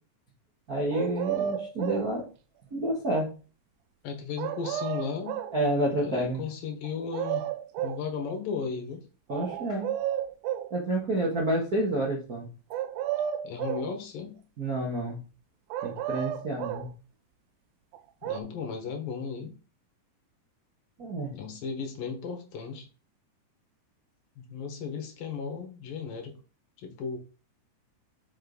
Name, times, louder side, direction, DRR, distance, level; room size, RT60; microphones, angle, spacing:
voice 1, 0.7-2.3 2.7-3.3 5.5-6.4 9.3-9.9 10.7-12.5 14.6-15.2 15.8-16.9 21.0-21.4, right 1 dB, 45° right, -4 dB, 1.2 m, -29 dB
sound 1, 0.9-2.1 4.4-5.6 6.8-8.0 9.3-10.7 12.7-13.9 15.7-16.9 17.9-18.4, right 11 dB, 90° right, 2.5 m, -32 dB
voice 2, 4.0-5.5 6.0-7.5 7.8-9.0 13.4-14.4 18.2-19.6 21.3-22.9 24.4-26.3 26.8-27.2, left 5 dB, 75° left, 4 dB, 3.2 m, -35 dB
7.7 x 5.5 x 4.0 m, 0.35 s
omnidirectional pair, 4.1 m